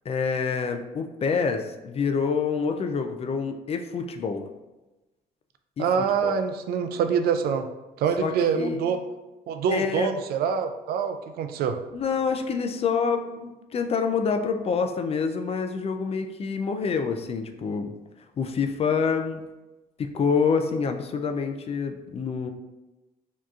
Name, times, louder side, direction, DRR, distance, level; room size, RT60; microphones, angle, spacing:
voice 1, 0.1-4.4 5.8-6.4 8.2-8.9 9.7-10.1 11.9-17.9 18.4-19.4 20.0-22.5, left 5 dB, 40° left, 6 dB, 0.4 m, -27 dB
voice 2, 5.8-7.7 8.0-9.0 9.5-11.8, right 6 dB, 75° right, 8 dB, 0.4 m, -25 dB
4.5 x 2.9 x 2.4 m, 1.1 s
cardioid pair, 95°, 16 cm